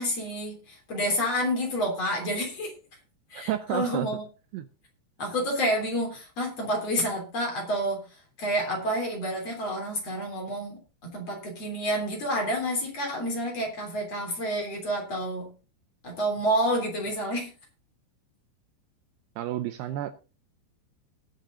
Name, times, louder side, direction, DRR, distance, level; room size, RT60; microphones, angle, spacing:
voice 1, 0.0-2.7 3.3-4.2 5.2-8.1 8.4-15.5 16.0-17.5, equal, 35° left, 1 dB, 4.1 m, -29 dB
voice 2, 3.3-4.1 4.5-4.7 19.4-20.1, right 12 dB, 80° right, 10 dB, 2.6 m, -31 dB
19.0 x 6.7 x 3.9 m, 0.33 s
omnidirectional pair, 5.1 m